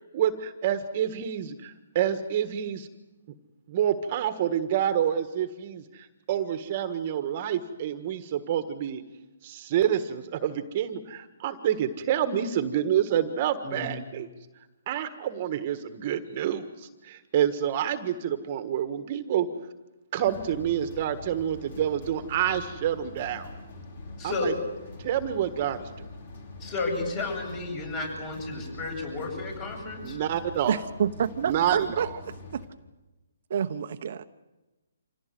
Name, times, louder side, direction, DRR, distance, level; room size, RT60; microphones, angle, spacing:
voice 1, 0.1-2.9 3.7-9.0 9.4-14.3 14.9-19.5 20.1-23.5 24.2-24.5 25.0-25.9 30.0-30.7 31.4-32.1, right 10 dB, 35° right, 10 dB, 1.5 m, -28 dB
sound 1, 20.2-32.7, left 2 dB, 55° left, 5.7 m, -44 dB
voice 2, 26.6-30.2, left 3 dB, 25° left, 3 dB, 7.8 m, -32 dB
voice 3, 30.7-32.6 33.5-34.2, right 8 dB, 55° right, 8 dB, 1.0 m, -28 dB
26.0 x 17.5 x 9.4 m, 1.1 s
hypercardioid pair, 150°, 0 cm